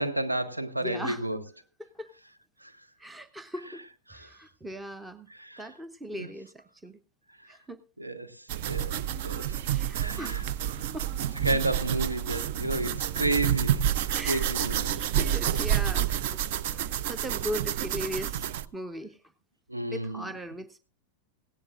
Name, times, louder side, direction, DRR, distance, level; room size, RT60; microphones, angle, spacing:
voice 1, 0.0-1.4 2.6-2.7 4.1-4.3 5.3-5.6 6.2-6.3 8.0-8.3 8.7-9.0 9.2-9.6 9.9-10.4 11.4-14.9 19.7-20.3, right 2 dB, 85° right, 1.0 m, -31 dB
voice 2, 0.8-1.2 1.8-2.1 3.0-3.8 4.1-5.3 5.6-6.5 6.8-7.0 7.5-7.8 9.5-10.5 10.9-11.1 14.1-14.5 15.0-19.2 19.9-20.8, equal, 10° right, 0.7 m, -39 dB
sound 1, 8.5-18.6, right 10 dB, 50° right, 0.5 m, -29 dB
17.5 x 16.5 x 2.5 m
figure-of-eight pair, 90°, 0 cm